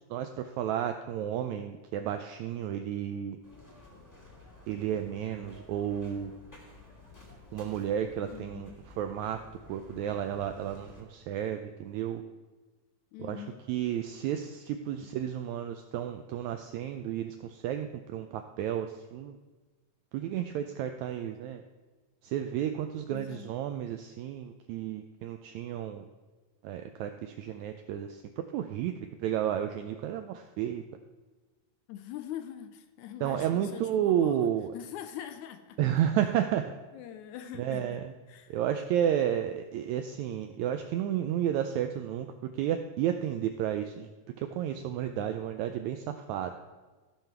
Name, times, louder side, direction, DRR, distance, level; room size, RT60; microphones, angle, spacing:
voice 1, 0.1-3.4 4.7-6.3 7.5-8.7 9.0-9.4 9.7-12.2 13.2-19.4 20.1-21.6 22.2-26.0 26.6-28.9 29.2-30.8 33.2-34.7 35.8-36.7 37.6-38.0 38.5-42.3 42.5-44.1 44.4-46.5, right 10 dB, 85° right, 7 dB, 1.6 m, -32 dB
sound 1, 3.4-11.0, left 3 dB, 10° left, 0.9 m, -52 dB
voice 2, 8.3-8.8 13.1-13.6 23.1-23.5 31.9-34.5 34.7-35.8 36.9-38.0 38.3-38.6, left 10 dB, 80° left, 9 dB, 1.8 m, -43 dB
14.5 x 5.6 x 4.4 m, 1.3 s
omnidirectional pair, 3.8 m